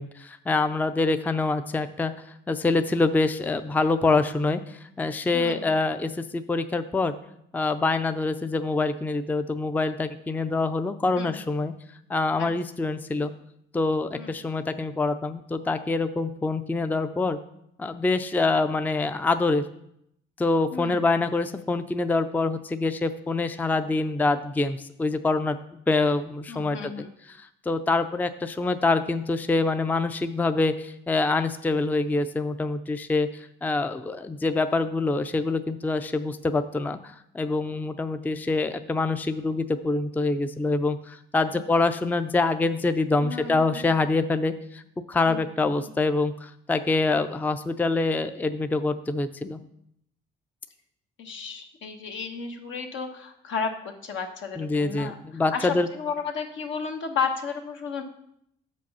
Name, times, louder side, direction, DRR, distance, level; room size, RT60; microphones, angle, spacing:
voice 1, 0.0-2.1 2.5-7.1 7.5-11.7 12.1-13.3 13.7-17.4 17.8-19.6 20.4-25.6 25.9-26.9 27.3-44.8 45.1-49.6 54.6-55.9, left 3 dB, 10° left, 10 dB, 0.4 m, -25 dB
voice 2, 5.3-5.7 11.2-11.4 12.4-12.5 14.1-14.3 20.7-21.0 26.5-27.1 41.3-41.6 43.2-43.9 45.3-45.9 51.2-58.0, left 5 dB, 75° left, 4 dB, 1.1 m, -33 dB
6.8 x 5.2 x 5.4 m, 0.75 s
cardioid pair, 90°, 20 cm